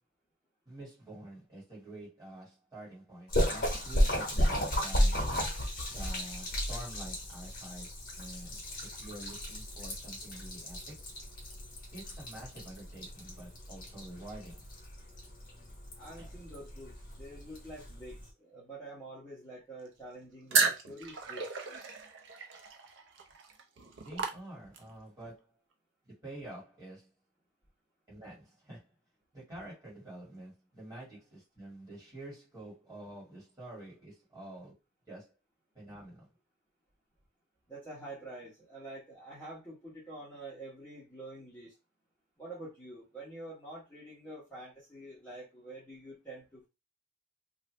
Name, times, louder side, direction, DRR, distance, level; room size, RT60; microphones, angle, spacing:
voice 1, 0.7-5.3 5.9-10.9 11.9-14.6 16.2-16.3 24.0-25.5 26.0-27.1 28.1-28.9 29.3-34.7 35.1-35.3 35.7-36.3, right 1 dB, 20° right, 1.9 m, -48 dB
Splash splatter, 3.3-18.3, equal, 45° left, 1.1 m, -34 dB
voice 2, 16.0-21.5 37.7-41.7 42.4-46.7, right 1 dB, 10° left, 1.1 m, -47 dB
sound 1, 20.5-25.0, right 5 dB, 65° right, 0.6 m, -33 dB
2.6 x 2.5 x 3.2 m
head